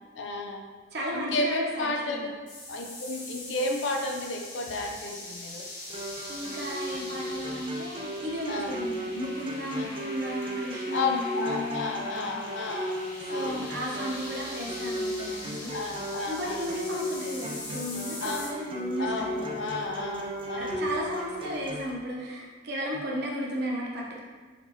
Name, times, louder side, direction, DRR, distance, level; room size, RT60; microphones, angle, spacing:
voice 1, 0.2-0.7 1.1-2.4 2.7-5.7 8.5-8.8 9.7-9.9 10.9-13.0 13.3-13.7 15.7-16.7 18.2-18.5 19.0-20.8, left 2 dB, 70° left, 3 dB, 0.5 m, -32 dB
voice 2, 0.9-2.3 6.3-12.4 13.2-15.7 16.3-19.7 20.6-24.2, equal, 60° right, -3 dB, 0.9 m, -34 dB
sound 1, 2.5-18.5, left 2 dB, 45° left, 1.2 m, -42 dB
sound 2, 5.9-21.9, equal, 30° right, 0.6 m, -36 dB
4.2 x 4.0 x 2.9 m, 1.4 s
head